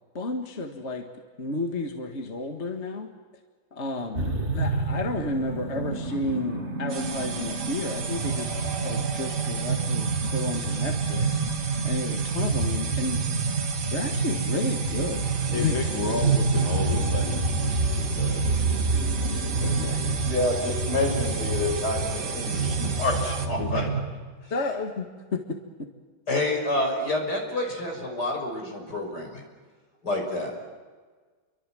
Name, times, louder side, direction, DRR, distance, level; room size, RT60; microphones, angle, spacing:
voice 1, 0.1-1.1 1.4-3.1 3.7-8.6 8.8-11.3 11.8-13.2 13.9-15.8 24.5-25.9, left 2 dB, 35° left, 4 dB, 2.0 m, -31 dB
sound 1, 4.1-24.0, right 3 dB, 35° right, 3.4 m, -28 dB
sound 2, 6.9-23.5, right 5 dB, 60° right, 2.2 m, -35 dB
voice 2, 15.5-18.9 19.6-20.0 23.6-23.9, left 4 dB, 85° left, 2 dB, 3.2 m, -33 dB
voice 3, 20.2-23.8 26.3-29.4 30.0-30.6, left 2 dB, 55° left, 2 dB, 6.6 m, -28 dB
30.0 x 24.0 x 7.8 m, 1.4 s
omnidirectional pair, 2.1 m